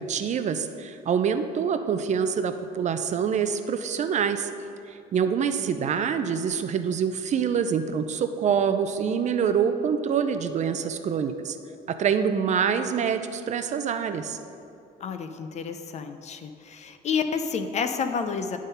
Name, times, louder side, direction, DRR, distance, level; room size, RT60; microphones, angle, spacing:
voice 1, 0.0-4.5 4.9-11.6 11.9-14.4, right 7 dB, 45° right, 9 dB, 0.5 m, -26 dB
voice 2, 15.0-18.6, left 6 dB, 45° left, 8 dB, 0.5 m, -30 dB
10.5 x 3.7 x 5.5 m, 2.6 s
cardioid pair, 110°, 17 cm